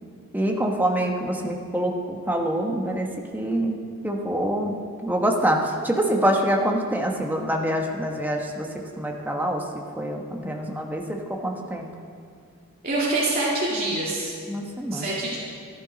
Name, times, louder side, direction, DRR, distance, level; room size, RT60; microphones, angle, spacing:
voice 1, 0.3-3.8 4.0-11.9 14.5-15.1, right 1 dB, 10° right, 1 dB, 1.2 m, -26 dB
voice 2, 12.8-14.3 14.9-15.4, right 2 dB, 45° right, -6 dB, 2.2 m, -25 dB
14.0 x 11.5 x 5.2 m, 2.2 s
head